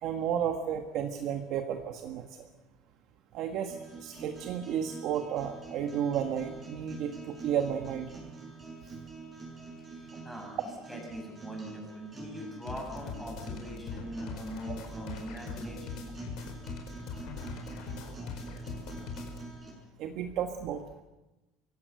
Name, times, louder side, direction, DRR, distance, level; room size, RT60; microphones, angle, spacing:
voice 1, 0.0-2.3 3.3-8.1 20.0-21.0, right 8 dB, 50° right, 5 dB, 1.5 m, -32 dB
sound 1, 3.7-19.7, right 3 dB, 15° right, 6.9 m, -45 dB
voice 2, 9.9-10.6 10.9-16.1, equal, ahead, -1 dB, 6.6 m, -42 dB
sound 2, 12.7-19.5, left 6 dB, 55° left, 4.6 m, -41 dB
24.5 x 16.0 x 7.9 m, 1.1 s
cardioid pair, 160°, 0 cm